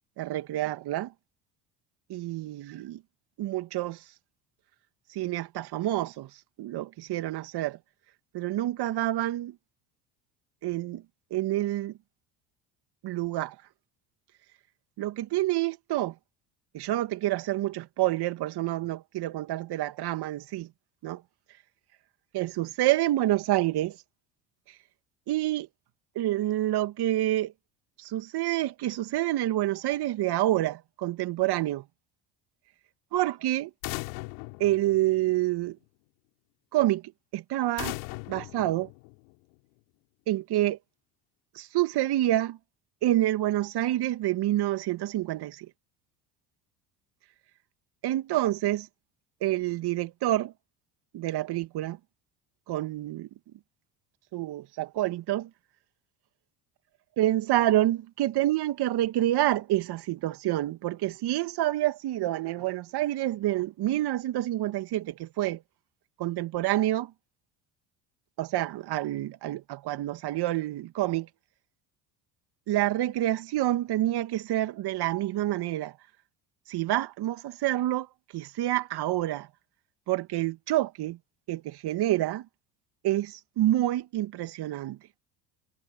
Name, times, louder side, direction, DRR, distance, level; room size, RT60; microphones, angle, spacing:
voice 1, 0.2-1.1 2.1-3.0 3.4-4.0 5.1-6.3 6.6-7.8 8.3-9.5 10.6-11.0 11.3-11.9 13.0-13.6 15.0-16.1 16.7-20.7 21.0-21.2 22.3-24.0 25.3-25.7 26.2-27.5 28.0-31.8 33.1-33.7 34.6-35.8 36.7-37.0 37.3-38.0 38.3-38.9 40.3-40.8 41.5-42.6 43.0-45.7 48.0-48.9 49.4-50.5 51.1-52.0 52.7-53.3 54.3-55.5 57.2-65.6 66.2-67.1 68.4-71.3 72.7-75.9 76.7-78.1 78.3-79.5 80.1-81.2 81.5-82.5 83.0-85.0, right 14 dB, 60° right, 2.4 m, -28 dB
sound 1, 33.8-35.6 37.8-39.5, left 29 dB, 75° left, 3.3 m, -39 dB
hypercardioid pair, 70°, 45 cm